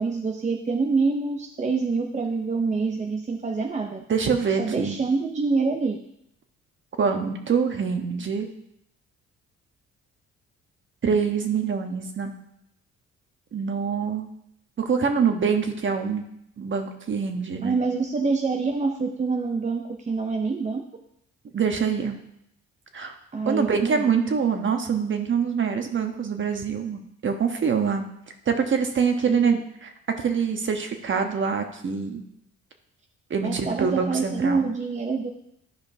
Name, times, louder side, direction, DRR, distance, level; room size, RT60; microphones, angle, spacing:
voice 1, 0.0-4.0 4.6-6.0 17.6-20.8 23.3-24.1 29.3-29.6 33.4-35.3, right 4 dB, 25° right, 3 dB, 0.6 m, -26 dB
voice 2, 4.1-5.0 7.0-8.5 11.0-12.3 13.5-14.3 14.8-16.2 16.6-17.8 21.5-22.2 22.9-23.1 23.4-28.1 28.5-29.6 30.2-32.2 33.3-34.6, right 6 dB, 40° right, 5 dB, 1.1 m, -25 dB
12.0 x 5.1 x 2.7 m, 0.76 s
cardioid pair, 90°, 30 cm